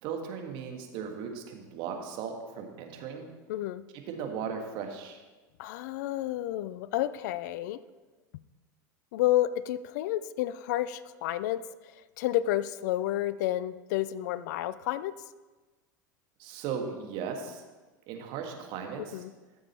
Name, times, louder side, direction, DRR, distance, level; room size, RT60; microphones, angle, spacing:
voice 1, 0.0-3.3 4.1-5.2 16.4-17.6 18.1-19.2, right 6 dB, 50° right, 3 dB, 1.7 m, -37 dB
voice 2, 3.5-3.8 5.6-7.8 9.1-11.6 12.2-15.1 19.0-19.3, left 14 dB, 60° left, 16 dB, 0.5 m, -30 dB
14.0 x 7.2 x 4.3 m, 1.3 s
hypercardioid pair, 85°, 10 cm